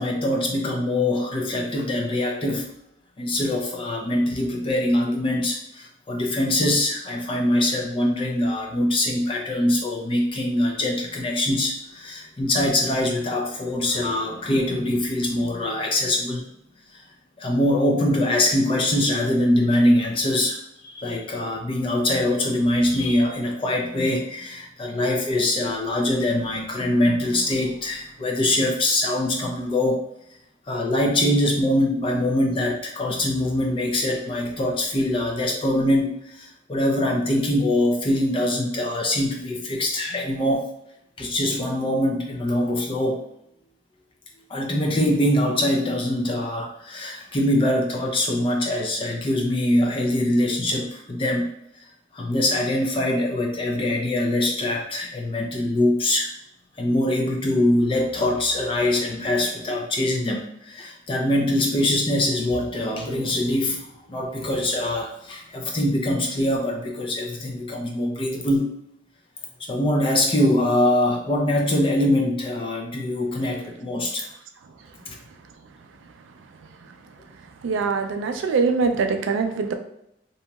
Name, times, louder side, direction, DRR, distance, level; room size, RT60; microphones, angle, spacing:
voice 1, 0.0-2.8 3.2-16.5 16.9-17.0 17.4-30.0 30.7-40.7 41.2-43.2 44.5-51.9 52.1-56.3 56.8-68.8 69.6-74.3 75.1-75.2, left 1 dB, 25° left, 1 dB, 0.4 m, -23 dB
voice 2, 77.6-79.7, right 4 dB, 75° right, 6 dB, 0.3 m, -23 dB
2.8 x 2.7 x 2.3 m, 0.78 s
head